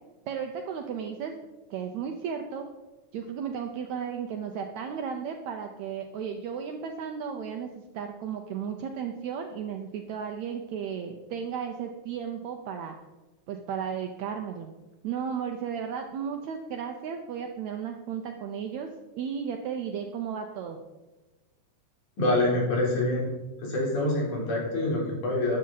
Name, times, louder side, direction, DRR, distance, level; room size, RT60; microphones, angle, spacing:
voice 1, 0.3-1.3 1.7-2.7 3.1-7.7 7.9-13.0 13.5-14.7 15.0-18.9 19.2-20.8, right 7 dB, 70° right, 4 dB, 1.8 m, -34 dB
voice 2, 22.2-23.3 23.6-25.6, left 1 dB, 65° left, -3 dB, 5.1 m, -26 dB
13.0 x 9.5 x 4.0 m, 1.2 s
omnidirectional pair, 3.9 m